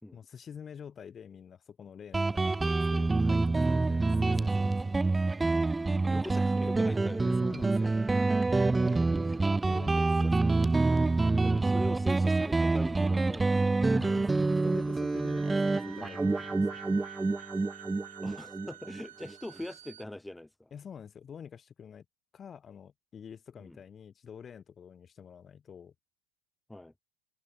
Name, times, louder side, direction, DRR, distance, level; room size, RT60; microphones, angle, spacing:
voice 1, 0.1-5.1 7.2-7.9 8.8-10.7 13.9-16.8 20.7-22.0 22.3-25.9, left 7 dB, 25° left, 2.3 m, -47 dB
Guitar, 2.1-19.3, right 3 dB, 10° right, 0.8 m, -27 dB
voice 2, 6.1-7.3 9.2-9.8 10.2-10.5 11.4-13.5 16.4-16.5 17.9-18.0 18.2-20.7 23.6-23.8 26.7-26.9, left 1 dB, 5° left, 2.7 m, -42 dB
sound 1, 14.0-20.0, right 11 dB, 80° right, 2.0 m, -49 dB
hypercardioid pair, 110°, 0 cm